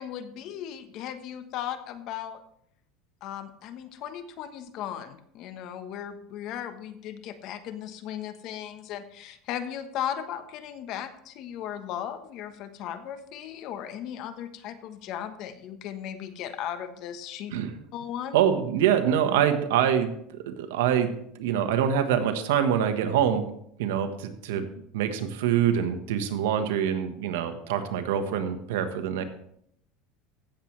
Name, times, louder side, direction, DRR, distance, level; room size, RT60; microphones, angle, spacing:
voice 1, 0.0-2.4 3.2-17.5 17.9-18.4, left 10 dB, 55° left, 10 dB, 1.2 m, -36 dB
voice 2, 18.3-21.1 21.4-23.4 23.8-24.7 24.9-29.2, right 9 dB, 85° right, 8 dB, 1.3 m, -25 dB
16.0 x 7.5 x 3.3 m, 0.70 s
supercardioid pair, 120°, 0 cm